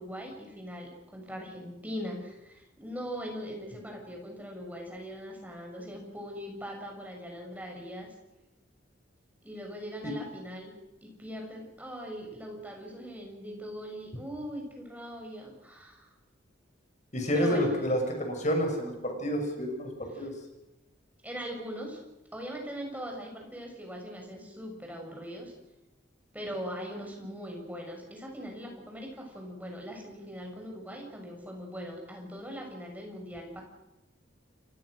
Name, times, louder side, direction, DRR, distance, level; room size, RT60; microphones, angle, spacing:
voice 1, 0.0-8.1 9.4-10.7 11.0-16.1 17.3-17.8 20.1-20.3 21.2-22.0 22.3-25.5 26.3-33.6, equal, 10° right, 1 dB, 7.0 m, -41 dB
voice 2, 17.1-20.3, equal, 40° left, 3 dB, 6.3 m, -29 dB
29.0 x 23.5 x 6.6 m, 0.96 s
head